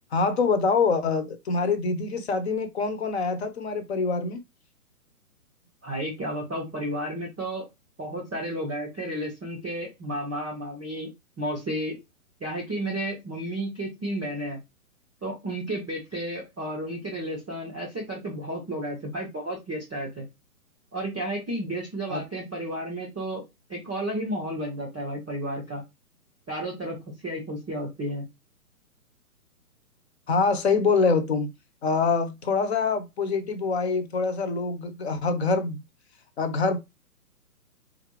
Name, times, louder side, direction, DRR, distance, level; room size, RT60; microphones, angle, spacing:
voice 1, 0.1-4.4 22.1-22.2 30.3-31.5 31.8-35.8 36.4-36.8, left 4 dB, 45° left, 0.7 m, -25 dB
voice 2, 5.8-7.7 8.0-11.1 11.4-12.0 12.4-14.6 15.2-20.2 20.9-23.4 23.7-25.8 26.5-27.0 27.2-28.2, right 1 dB, ahead, 0.4 m, -32 dB
4.0 x 2.5 x 3.1 m
hypercardioid pair, 150°, 45 cm